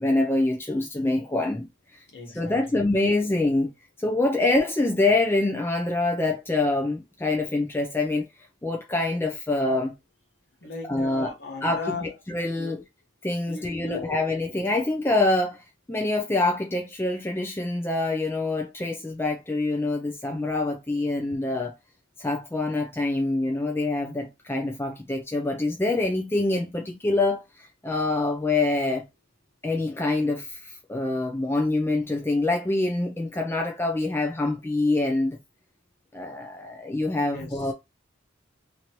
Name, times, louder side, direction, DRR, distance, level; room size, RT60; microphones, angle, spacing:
voice 1, 0.0-1.7 1.9-2.0 2.4-8.3 8.6-9.9 10.9-11.3 11.6-12.8 13.2-21.7 22.2-29.0 29.6-35.4 36.1-37.7, left 2 dB, 10° left, 0.4 m, -25 dB
voice 2, 2.1-2.8 10.6-12.1 12.5-12.8 13.5-14.2 37.1-37.7, left 3 dB, 55° left, 1.2 m, -37 dB
3.0 x 2.6 x 2.9 m
head